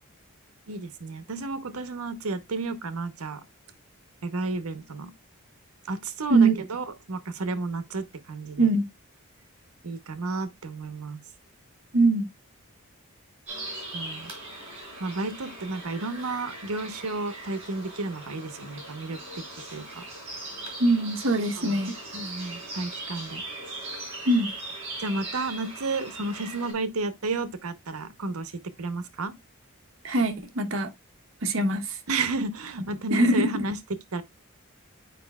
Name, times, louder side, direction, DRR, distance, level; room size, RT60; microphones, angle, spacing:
voice 1, 0.7-3.4 4.2-5.1 5.9-8.7 9.8-11.2 13.9-14.3 15.0-19.2 19.7-20.0 21.6-21.8 22.1-23.4 25.0-28.5 28.8-29.3 32.1-33.8 34.1-34.2, right 3 dB, 80° right, 0.9 m, -32 dB
voice 2, 6.3-6.6 8.6-8.9 11.9-12.3 20.8-21.9 24.2-24.5 30.0-30.9 31.4-32.0 33.1-33.5, right 2 dB, 60° right, 1.0 m, -22 dB
sound 1, 13.5-26.7, right 2 dB, 30° right, 3.7 m, -40 dB
9.3 x 5.0 x 2.3 m
head